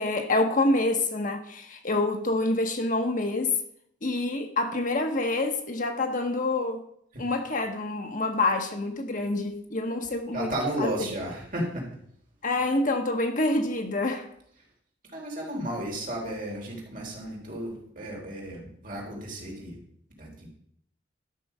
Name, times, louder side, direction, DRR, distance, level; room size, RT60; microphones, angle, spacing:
voice 1, 0.0-3.5 4.0-6.8 7.2-10.5 10.8-10.9 12.4-14.3, left 2 dB, 45° left, 1.1 m, -27 dB
voice 2, 10.3-11.9 15.1-19.8 20.2-20.5, right 1 dB, 45° right, 3.3 m, -33 dB
12.5 x 6.1 x 5.4 m
head